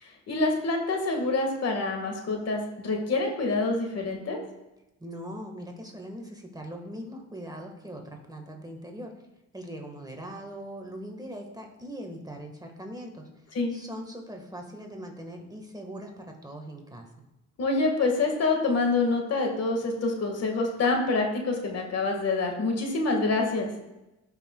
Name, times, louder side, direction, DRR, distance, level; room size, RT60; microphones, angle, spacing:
voice 1, 0.0-4.4 13.5-13.7 17.6-23.7, left 3 dB, 55° left, 2 dB, 1.6 m, -26 dB
voice 2, 5.0-9.1 9.5-13.3 13.7-17.1, equal, 15° right, 2 dB, 1.4 m, -41 dB
14.0 x 5.7 x 2.2 m, 0.97 s
cardioid pair, 90°, 30 cm